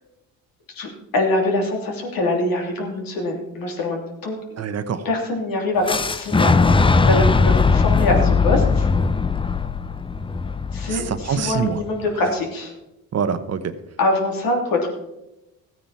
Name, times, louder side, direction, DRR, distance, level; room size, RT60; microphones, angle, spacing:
voice 1, 0.7-4.4 5.0-6.6 7.1-8.9 10.7-12.7 14.0-14.9, left 2 dB, 70° left, 2 dB, 3.1 m, -23 dB
voice 2, 4.6-5.1 10.9-11.8 13.1-13.7, right 6 dB, 45° right, 11 dB, 1.0 m, -25 dB
Boom, 5.9-11.7, left 4 dB, 15° left, 0.5 m, -19 dB
14.5 x 9.1 x 4.2 m, 0.92 s
cardioid pair, 100°, 36 cm